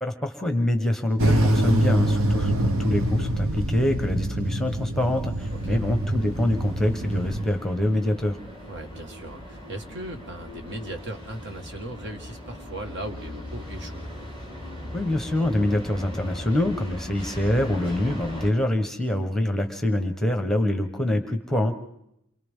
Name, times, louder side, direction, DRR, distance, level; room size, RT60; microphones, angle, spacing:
voice 1, 0.0-8.4 14.9-21.7, left 1 dB, ahead, 6 dB, 1.2 m, -25 dB
sound 1, 1.2-7.5, right 1 dB, 75° right, 1.1 m, -25 dB
sound 2, 5.4-18.5, left 1 dB, 25° right, 4.8 m, -39 dB
voice 2, 5.5-5.8 8.7-14.0, right 1 dB, 55° right, 4 dB, 1.8 m, -38 dB
29.0 x 24.5 x 3.7 m, 0.80 s
head